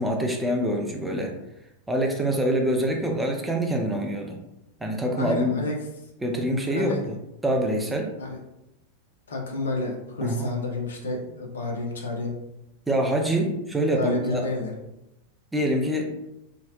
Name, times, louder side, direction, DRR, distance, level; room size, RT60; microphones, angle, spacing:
voice 1, 0.0-1.3 1.9-4.4 4.8-5.6 6.2-7.0 7.4-8.1 10.2-10.5 12.9-14.5 15.5-16.1, equal, 5° right, 1 dB, 0.4 m, -25 dB
voice 2, 5.1-5.8 6.7-7.0 8.2-8.4 9.3-12.4 13.5-13.6 13.9-14.7, left 2 dB, 65° left, 0 dB, 0.5 m, -30 dB
2.6 x 2.0 x 2.3 m, 0.89 s
figure-of-eight pair, 90°, 0 cm